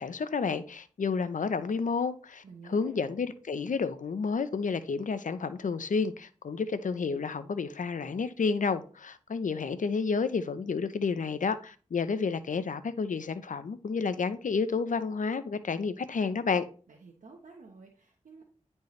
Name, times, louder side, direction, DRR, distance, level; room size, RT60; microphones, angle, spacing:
voice 1, 0.0-2.4 2.7-16.7, left 5 dB, 80° left, 0.7 m, -30 dB
voice 2, 2.4-3.0 16.9-18.4, right 4 dB, 90° right, 1.2 m, -50 dB
10.5 x 4.5 x 3.2 m
cardioid pair, 45°, 13 cm